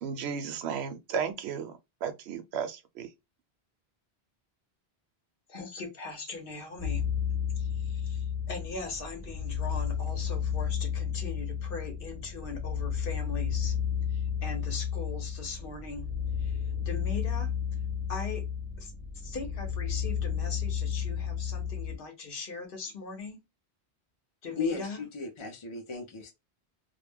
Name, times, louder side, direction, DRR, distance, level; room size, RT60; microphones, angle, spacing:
voice 1, 0.0-1.7 2.0-3.1, right 7 dB, 75° right, 0.8 m, -34 dB
voice 2, 5.5-7.1 7.6-13.7 14.1-16.1 16.4-17.5 18.1-18.4 18.8-23.4 24.4-25.0, left 4 dB, 60° left, 0.9 m, -40 dB
sound 1, 6.8-22.0, left 7 dB, 5° left, 1.0 m, -32 dB
voice 3, 24.6-26.3, left 4 dB, 35° left, 0.5 m, -35 dB
2.3 x 2.1 x 3.3 m
omnidirectional pair, 1.1 m